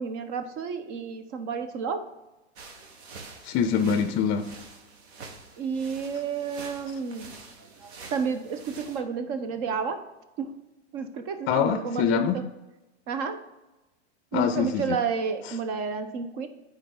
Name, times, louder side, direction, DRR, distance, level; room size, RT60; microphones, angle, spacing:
voice 1, 0.0-2.1 5.6-7.3 7.8-10.0 10.4-10.5 10.9-12.5 13.1-13.4 14.3-16.5, right 5 dB, 50° right, 9 dB, 0.9 m, -31 dB
sound 1, 2.6-9.0, right 4 dB, 65° right, 1.3 m, -46 dB
voice 2, 3.4-4.5 11.5-12.4 14.3-15.0, left 7 dB, 35° left, 9 dB, 0.5 m, -24 dB
9.1 x 4.7 x 3.7 m, 1.0 s
hypercardioid pair, 125°, 35 cm